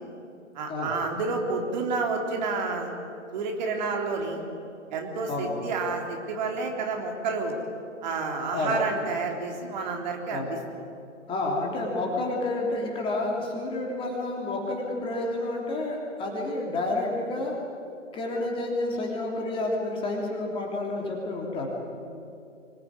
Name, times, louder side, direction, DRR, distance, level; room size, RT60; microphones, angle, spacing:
voice 1, 0.5-2.9 3.3-4.4 4.9-7.6 8.0-10.6, right 4 dB, 35° right, 2 dB, 3.7 m, -29 dB
voice 2, 11.3-17.5 18.1-21.7, left 2 dB, 15° left, -1 dB, 3.0 m, -29 dB
25.5 x 19.5 x 9.7 m, 2.6 s
figure-of-eight pair, 130°, 39 cm